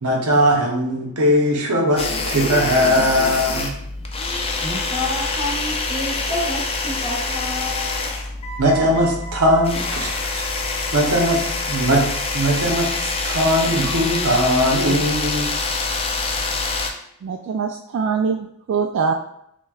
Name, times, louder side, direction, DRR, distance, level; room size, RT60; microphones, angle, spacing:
voice 1, 0.0-3.7 8.6-10.4 10.9-12.0 12.3-15.5, equal, 75° right, 1 dB, 0.8 m, -19 dB
sound 1, 2.0-16.9, left 3 dB, 25° left, 0.4 m, -25 dB
voice 2, 4.6-8.1, left 1 dB, 15° right, -7 dB, 1.3 m, -29 dB
voice 3, 17.2-19.1, right 5 dB, 60° right, 2 dB, 0.3 m, -23 dB
6.0 x 2.2 x 2.3 m, 0.75 s
head